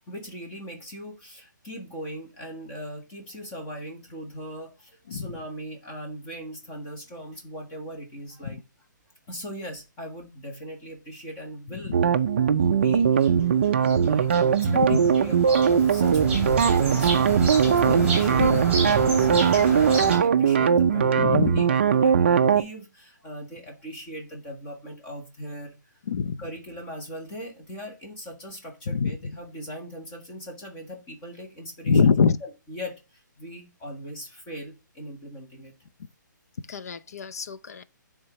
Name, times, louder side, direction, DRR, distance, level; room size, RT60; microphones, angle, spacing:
voice 1, 0.0-8.6 9.3-11.9 12.5-13.4 13.8-18.5 18.8-25.8 26.4-32.1 32.4-35.7, equal, 15° left, 1.2 m, -39 dB
sound 1, 11.9-22.6, right 7 dB, 35° right, 0.4 m, -20 dB
sound 2, 13.2-20.2, right 3 dB, 10° right, 2.8 m, -30 dB
voice 2, 14.6-15.0 17.8-18.1 18.3-18.6 20.9-21.6 26.1-26.4 28.9-29.1 31.8-32.4 36.7-37.8, left 5 dB, 50° left, 0.5 m, -24 dB
9.4 x 3.6 x 3.0 m
hypercardioid pair, 175°, 10 cm